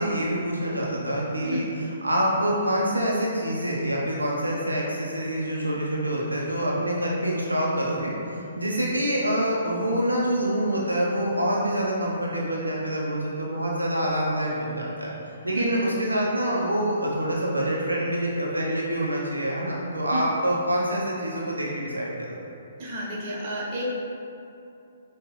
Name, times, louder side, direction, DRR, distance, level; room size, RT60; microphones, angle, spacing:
voice 1, 0.0-15.1 15.4-22.4, right 1 dB, 85° right, -4 dB, 0.6 m, -26 dB
voice 2, 22.8-23.9, equal, 35° right, -5 dB, 1.0 m, -31 dB
5.8 x 2.3 x 3.1 m, 2.8 s
figure-of-eight pair, 125°, 0 cm